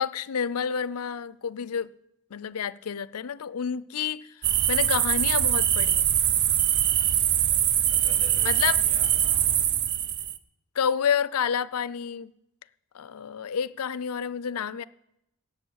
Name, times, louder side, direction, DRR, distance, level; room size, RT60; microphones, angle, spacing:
voice 1, 0.0-1.9 2.3-4.3 4.7-6.1 8.4-8.8 10.8-12.3 12.9-14.8, left 7 dB, 90° left, 0.5 m, -29 dB
sound 1, 4.4-10.4, right 10 dB, 55° right, 0.6 m, -23 dB
voice 2, 7.9-9.6, right 1 dB, 40° right, 6.4 m, -47 dB
17.5 x 7.8 x 6.4 m
head